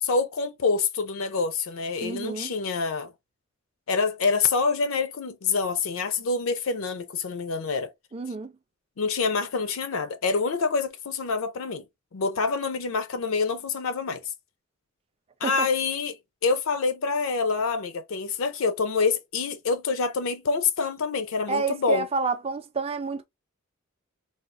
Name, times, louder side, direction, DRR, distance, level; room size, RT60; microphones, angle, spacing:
voice 1, 0.0-3.1 3.9-7.9 9.0-11.8 12.1-14.2 15.4-16.2 16.4-22.1, left 4 dB, 65° left, 0.5 m, -26 dB
voice 2, 2.0-2.5 8.1-8.5 15.4-15.7 21.5-23.2, right 4 dB, 30° right, 0.4 m, -29 dB
3.4 x 2.3 x 2.4 m
head